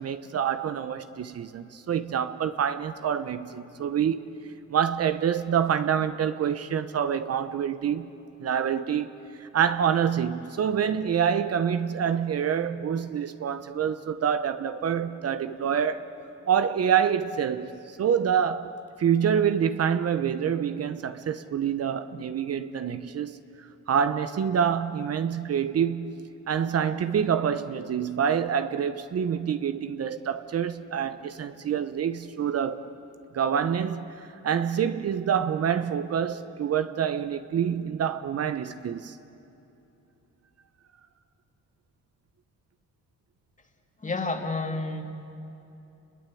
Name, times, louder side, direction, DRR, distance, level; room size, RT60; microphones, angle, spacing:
voice 1, 0.0-4.2 4.7-8.1 8.4-9.1 9.4-16.1 16.5-23.4 23.9-26.2 26.5-32.8 33.3-34.1 34.4-39.2, right 8 dB, 55° right, 1.0 m, -26 dB
voice 2, 44.0-45.0, left 3 dB, 25° left, 3.0 m, -29 dB
29.5 x 21.0 x 8.5 m
cardioid pair, 90°, 30 cm